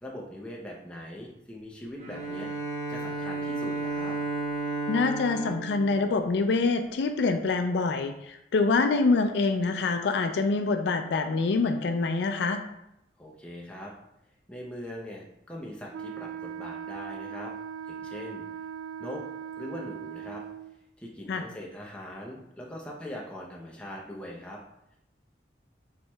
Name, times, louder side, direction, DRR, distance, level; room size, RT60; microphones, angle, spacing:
voice 1, 0.0-2.5 2.9-4.2 13.2-13.9 14.5-17.5 17.9-18.4 19.0-19.2 19.6-20.4 21.0-24.6, left 1 dB, 5° left, -3 dB, 0.6 m, -41 dB
Bowed string instrument, 2.0-6.8, right 3 dB, 40° right, 0.8 m, -33 dB
voice 2, 4.9-12.6 21.3-21.4, left 3 dB, 75° left, 7 dB, 0.3 m, -25 dB
Wind instrument woodwind instrument, 15.9-20.8, right 8 dB, 85° right, 0.3 m, -39 dB
4.5 x 4.2 x 2.2 m, 0.82 s
head